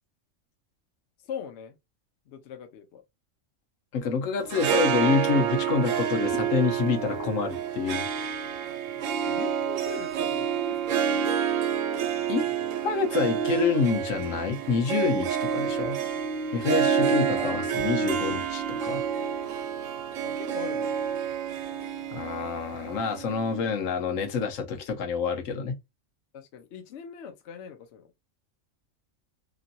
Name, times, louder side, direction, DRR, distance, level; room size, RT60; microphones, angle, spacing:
voice 1, 1.2-1.8 2.3-3.0 9.3-11.3 12.4-12.8 15.6-16.0 17.4-17.7 18.0-18.1 20.2-20.9 26.3-28.1, left 6 dB, 70° left, 0.9 m, -41 dB
voice 2, 3.9-8.3 12.3-12.5 12.8-15.9 16.5-19.1 22.1-25.8, left 5 dB, 85° left, 1.2 m, -27 dB
Harp, 4.4-23.7, right 8 dB, 85° right, 1.0 m, -28 dB
3.0 x 2.6 x 2.5 m
omnidirectional pair, 1.3 m